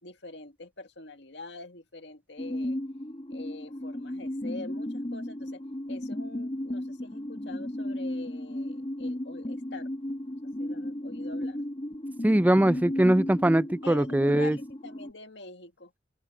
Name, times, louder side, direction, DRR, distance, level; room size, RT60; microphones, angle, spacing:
voice 1, 0.0-2.8 3.3-5.6 5.9-9.9 10.6-11.6 13.8-15.9, left 3 dB, 75° left, 2.0 m, -45 dB
sound 1, 2.4-15.1, left 1 dB, 30° left, 1.2 m, -35 dB
voice 2, 12.2-14.6, right 1 dB, 10° right, 0.3 m, -22 dB
open air
head